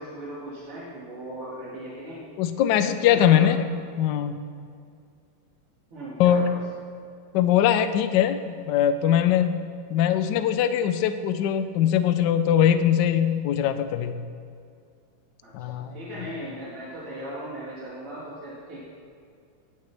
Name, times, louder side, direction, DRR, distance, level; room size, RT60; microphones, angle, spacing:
voice 1, 0.0-2.2 3.0-3.5 5.9-6.6 15.4-18.8, right 1 dB, 90° right, -8 dB, 2.9 m, -38 dB
voice 2, 2.4-3.6 4.0-4.4 6.2-6.5 7.3-9.6 9.9-14.2 15.5-16.3, left 10 dB, 75° left, 10 dB, 1.0 m, -21 dB
18.0 x 6.5 x 3.4 m, 2.3 s
omnidirectional pair, 2.4 m